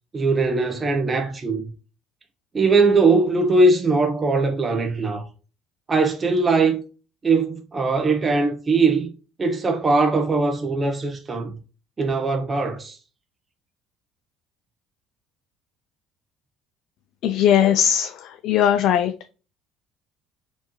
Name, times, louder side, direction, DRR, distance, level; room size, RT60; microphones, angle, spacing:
voice 1, 0.1-1.7 2.5-5.3 5.9-6.8 7.2-9.1 9.4-11.5 12.0-13.0, right 3 dB, 20° right, 0.7 m, -20 dB
voice 2, 17.2-18.1 18.4-19.1, left 9 dB, 60° left, 0.4 m, -18 dB
4.4 x 2.8 x 2.9 m
cardioid pair, 135°, 0 cm